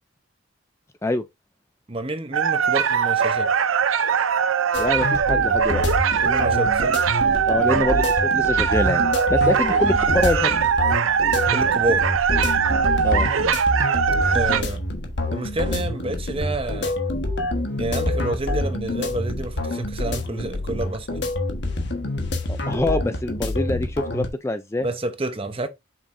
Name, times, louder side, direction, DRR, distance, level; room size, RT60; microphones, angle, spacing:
voice 1, 1.9-3.5 6.2-7.0 11.5-12.1 14.3-14.8 15.3-17.0 17.8-21.2 24.8-25.7, right 2 dB, 30° right, 0.8 m, -29 dB
sound 1, 2.3-14.6, right 6 dB, 85° right, 0.6 m, -21 dB
sound 2, 4.7-24.3, left 2 dB, 60° left, 1.4 m, -27 dB
voice 2, 4.8-5.8 7.5-9.0 9.3-10.5 13.0-13.3 22.5-24.9, left 1 dB, 15° left, 0.4 m, -25 dB
7.0 x 5.6 x 2.6 m
head